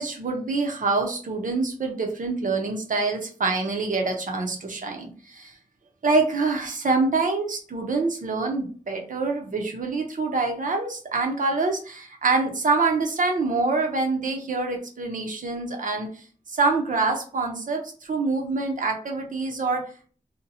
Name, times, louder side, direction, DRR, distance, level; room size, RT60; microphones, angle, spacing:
voice 1, 0.0-5.5 6.0-20.1, right 3 dB, 70° right, 2 dB, 0.7 m, -26 dB
2.8 x 2.2 x 2.6 m, 0.41 s
wide cardioid pair, 70°, 14 cm